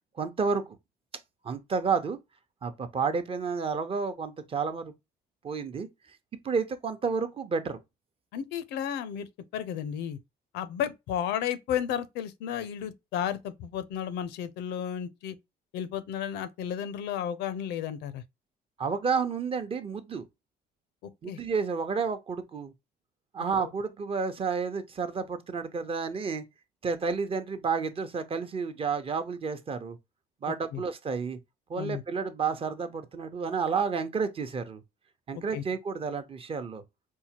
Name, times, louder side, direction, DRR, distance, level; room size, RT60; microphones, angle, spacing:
voice 1, 0.2-0.8 1.4-2.2 2.6-4.9 5.4-5.9 6.4-7.8 18.8-20.3 21.2-22.7 23.3-26.4 26.8-30.0 30.4-31.4 31.7-34.8 35.3-36.8, right 5 dB, 35° right, 0.7 m, -30 dB
voice 2, 8.3-9.3 9.5-10.2 10.5-15.4 15.7-18.2 21.3-21.4 30.7-30.8 31.8-32.0 35.3-35.6, left 9 dB, 85° left, 0.5 m, -33 dB
4.5 x 2.2 x 2.8 m
cardioid pair, 110°, 17 cm